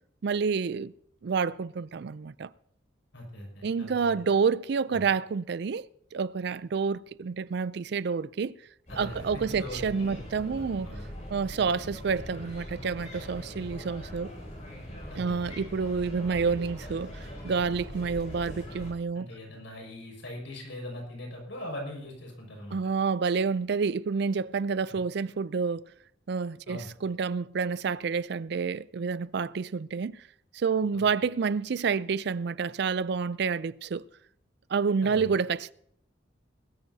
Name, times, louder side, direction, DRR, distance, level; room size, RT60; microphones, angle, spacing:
voice 1, 0.2-0.9 1.2-2.5 3.6-5.9 6.1-8.6 9.0-10.9 11.3-14.3 15.2-17.2 17.4-19.3 22.7-25.9 26.3-30.2 30.5-34.1 34.7-35.7, right 5 dB, 60° right, 0.4 m, -29 dB
voice 2, 3.1-4.3 4.9-5.1 8.9-10.2 10.5-11.1 15.1-15.4 19.1-22.8 26.7-26.9 30.9-31.0 35.0-35.3, left 1 dB, 80° left, 5.8 m, -41 dB
sound 1, 8.9-18.9, equal, 40° left, 6.6 m, -42 dB
21.5 x 13.5 x 2.7 m
head